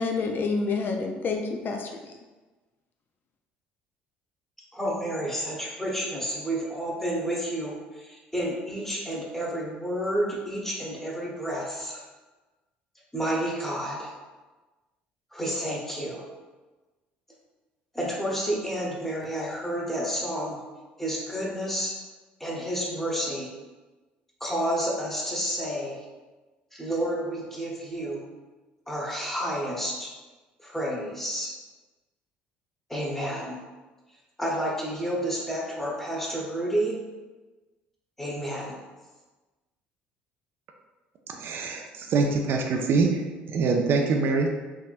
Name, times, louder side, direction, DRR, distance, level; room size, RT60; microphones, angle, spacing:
voice 1, 0.0-2.0, left 4 dB, 45° left, 3 dB, 0.3 m, -28 dB
voice 2, 4.7-12.0 13.1-14.1 15.3-16.2 17.9-20.6 21.0-22.0 22.4-23.5 24.4-26.0 26.7-28.3 28.9-30.1 30.6-31.5 32.9-33.6 34.4-37.0 38.2-38.8, right 1 dB, 5° left, -3 dB, 1.0 m, -30 dB
voice 3, 41.3-43.2 43.5-44.5, right 4 dB, 55° right, 2 dB, 0.4 m, -24 dB
3.4 x 2.6 x 2.4 m, 1.2 s
hypercardioid pair, 65°, 5 cm